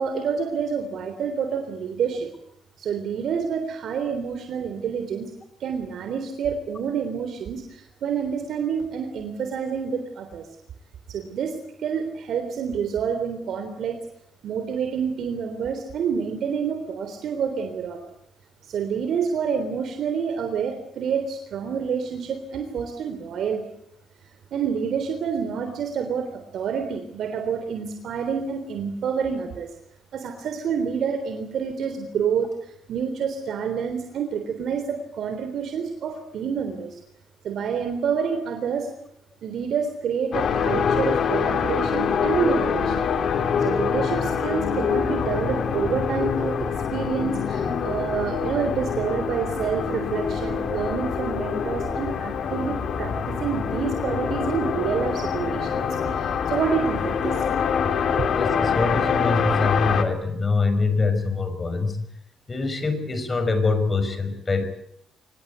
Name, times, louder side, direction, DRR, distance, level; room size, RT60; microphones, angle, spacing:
voice 1, 0.0-2.3 2.8-5.3 5.6-10.5 11.1-14.0 14.4-18.0 18.7-23.6 24.5-29.7 30.1-37.0 37.4-38.9 39.4-43.0 43.6-57.4 58.2-58.3, right 6 dB, 70° right, 6 dB, 3.6 m, -28 dB
sound 1, 40.3-60.0, left 6 dB, 60° left, 3.2 m, -25 dB
voice 2, 58.4-62.1 62.5-64.6, left 3 dB, 30° left, 10 dB, 5.6 m, -24 dB
25.0 x 20.0 x 8.2 m, 0.73 s
cardioid pair, 90°, 0 cm